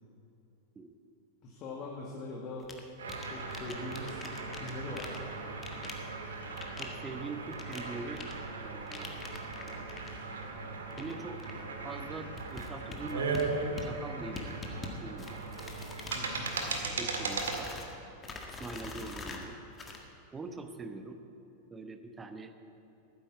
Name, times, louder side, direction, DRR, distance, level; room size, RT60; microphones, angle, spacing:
voice 1, 1.4-2.7 3.3-5.3 16.1-16.5, left 2 dB, 35° left, -2 dB, 1.9 m, -42 dB
sound 1, 2.6-2.8 3.1-4.7 5.0-5.2 5.6-5.9 6.6-6.8 7.5-7.8 8.2-8.3 8.9-10.1 10.9-11.1 11.4-11.6 12.4-13.4 13.8-13.9 14.4-14.9 15.2-16.2 16.5-16.9 17.3-17.9 18.2-19.5 19.7-20.0, left 4 dB, 20° left, 1.7 m, -44 dB
sound 2, 3.0-17.6, right 4 dB, 65° right, 1.9 m, -38 dB
voice 2, 6.8-8.3 8.6-9.2 11.0-11.4 11.8-13.5 13.8-14.6 15.0-15.4 17.0-17.7 18.6-19.6 20.3-21.2 21.7-22.5, right 3 dB, 15° right, 8 dB, 1.0 m, -43 dB
13.0 x 10.0 x 8.4 m, 3.0 s
figure-of-eight pair, 90°, 0 cm